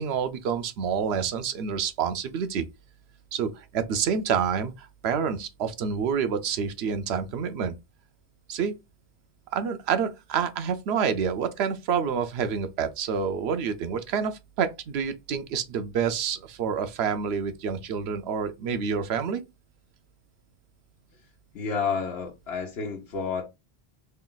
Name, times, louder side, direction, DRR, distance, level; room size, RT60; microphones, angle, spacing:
voice 1, 0.0-2.6 3.3-7.8 8.5-8.7 9.5-19.4, right 7 dB, 85° right, 0.9 m, -28 dB
voice 2, 21.5-23.4, left 5 dB, 80° left, 1.1 m, -30 dB
3.3 x 2.3 x 3.8 m
omnidirectional pair, 1.0 m